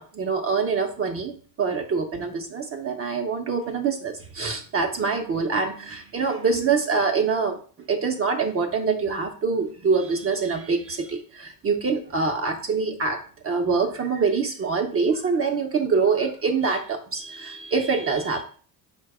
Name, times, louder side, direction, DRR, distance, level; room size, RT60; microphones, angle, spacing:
voice 1, 0.0-7.6 7.9-13.2 13.4-18.4, right 5 dB, 35° right, 2 dB, 0.6 m, -25 dB
4.5 x 2.2 x 4.6 m, 0.43 s
supercardioid pair, 85°, 42 cm